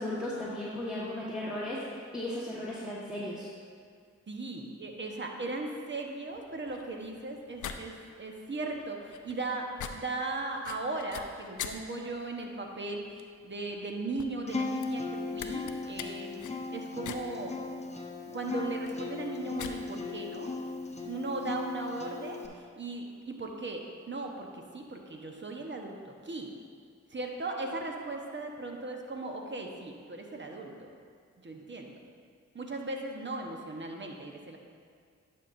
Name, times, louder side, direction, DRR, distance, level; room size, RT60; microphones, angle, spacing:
voice 1, 0.0-3.5, left 1 dB, 5° right, -9 dB, 1.5 m, -36 dB
voice 2, 4.3-16.4 16.7-17.5 18.3-20.6 21.0-26.5 27.1-30.9 31.4-31.9 32.5-34.6, right 2 dB, 40° right, 2 dB, 1.2 m, -38 dB
sound 1, 6.3-21.6, left 7 dB, 75° left, 0.5 m, -46 dB
Acoustic guitar, 14.5-22.5, left 3 dB, 20° left, 0.9 m, -37 dB
11.0 x 5.7 x 2.7 m, 2.2 s
supercardioid pair, 45°, 31 cm